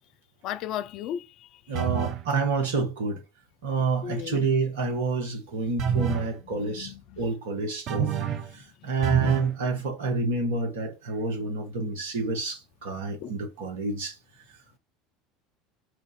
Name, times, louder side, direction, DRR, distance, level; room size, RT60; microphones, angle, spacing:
voice 1, 0.4-1.5 4.0-4.5 6.6-7.2 8.8-9.0 13.2-13.3, left 10 dB, 55° left, 0.4 m, -36 dB
sound 1, 1.7-2.3 5.8-6.3 7.9-8.5 9.0-9.5, right 8 dB, 45° right, 0.7 m, -27 dB
voice 2, 1.7-3.2 3.6-8.1 8.5-14.2, right 4 dB, 70° right, 1.3 m, -28 dB
4.7 x 2.5 x 4.1 m
figure-of-eight pair, 70°, 0 cm